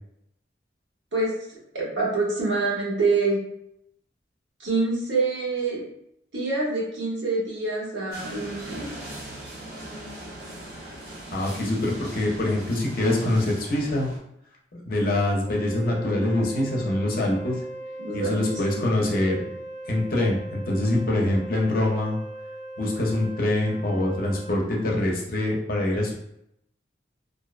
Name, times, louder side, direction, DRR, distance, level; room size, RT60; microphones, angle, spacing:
voice 1, 1.1-3.4 4.6-5.8 6.3-8.9 18.0-18.6, right 3 dB, 85° right, -4 dB, 0.9 m, -26 dB
sound 1, 8.1-14.2, right 1 dB, 55° right, 0.7 m, -40 dB
voice 2, 11.3-14.1 14.7-17.6 18.1-19.4 19.9-22.2 22.8-26.1, left 1 dB, 50° left, -1 dB, 0.5 m, -24 dB
Wind instrument woodwind instrument, 15.4-24.6, right 1 dB, 10° right, 0.8 m, -39 dB
2.5 x 2.0 x 2.4 m, 0.77 s
head